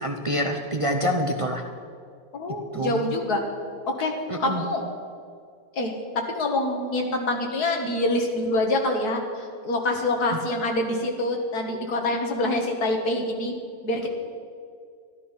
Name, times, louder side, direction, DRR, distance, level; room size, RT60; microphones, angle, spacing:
voice 1, 0.0-1.6 2.7-3.1 4.3-4.6, equal, 30° right, 3 dB, 0.7 m, -26 dB
voice 2, 2.3-3.4 3.9-4.1 4.4-4.8 5.8-13.5 13.8-14.1, left 2 dB, 85° left, 3 dB, 2.2 m, -26 dB
12.5 x 12.5 x 5.8 m, 2.2 s
omnidirectional pair, 1.6 m